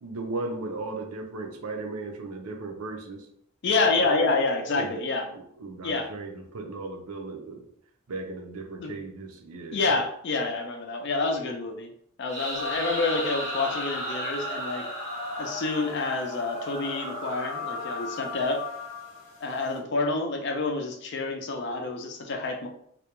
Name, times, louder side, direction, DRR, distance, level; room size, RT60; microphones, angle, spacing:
voice 1, 0.0-3.3 3.9-4.3 4.7-5.1 5.3-7.7 8.1-9.9, right 3 dB, 85° right, 2 dB, 0.5 m, -36 dB
voice 2, 3.6-5.3 5.8-6.1 8.8-9.0 9.7-11.9 12.2-14.9 15.4-18.6 19.4-22.7, left 3 dB, 50° left, 3 dB, 0.4 m, -28 dB
sound 1, 12.3-16.1, equal, 15° right, 0.7 m, -37 dB
sound 2, 12.5-19.8, left 1 dB, 85° left, 0.9 m, -36 dB
2.3 x 2.1 x 2.9 m, 0.67 s
head